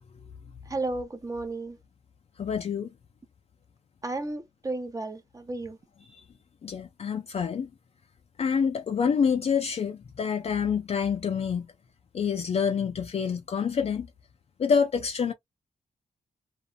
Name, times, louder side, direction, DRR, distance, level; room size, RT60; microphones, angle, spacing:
voice 1, 0.7-1.8 4.0-5.8, right 2 dB, 25° right, 0.5 m, -33 dB
voice 2, 2.4-2.9 6.1-6.2 6.6-7.7 8.4-11.7 12.1-14.1 14.6-15.3, left 6 dB, 45° left, 0.4 m, -27 dB
2.4 x 2.1 x 2.7 m
cardioid pair, 85°, 14 cm